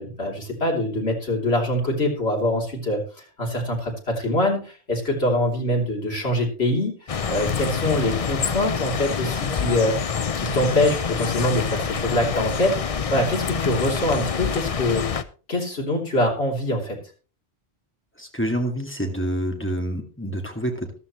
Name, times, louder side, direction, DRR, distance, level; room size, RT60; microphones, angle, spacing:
voice 1, 0.0-10.0 10.4-15.1 15.5-17.0, left 1 dB, 75° left, -1 dB, 3.5 m, -24 dB
sound 1, 7.1-15.2, left 6 dB, 40° left, 0.6 m, -26 dB
voice 2, 18.2-20.9, equal, 10° left, 2 dB, 2.1 m, -27 dB
14.0 x 12.5 x 3.1 m, 0.35 s
omnidirectional pair, 1.1 m